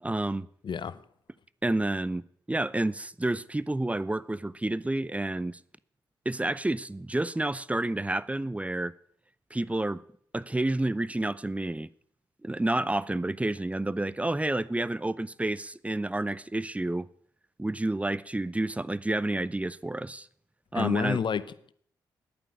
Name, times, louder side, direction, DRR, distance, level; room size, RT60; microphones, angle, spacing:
voice 1, 0.0-0.5 1.6-5.6 6.3-8.9 9.5-10.0 10.3-11.9 12.4-17.1 17.6-20.3 20.7-21.2, right 2 dB, 15° right, 0.6 m, -29 dB
voice 2, 0.6-1.0 20.7-21.7, left 7 dB, 50° left, 0.8 m, -29 dB
10.5 x 9.0 x 7.9 m
hypercardioid pair, 40°, 10 cm